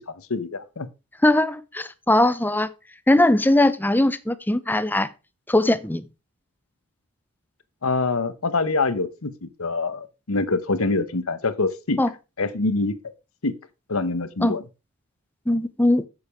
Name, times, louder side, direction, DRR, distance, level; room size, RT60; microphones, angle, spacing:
voice 1, 0.2-0.9 7.8-12.0 12.4-13.0 13.4-13.6 13.9-14.6, left 3 dB, 70° left, 1.0 m, -25 dB
voice 2, 1.2-2.7 3.1-5.1 5.5-6.0 12.0-12.1 14.4-14.6 15.5-16.1, left 1 dB, 10° left, 0.6 m, -20 dB
8.4 x 6.8 x 4.9 m
head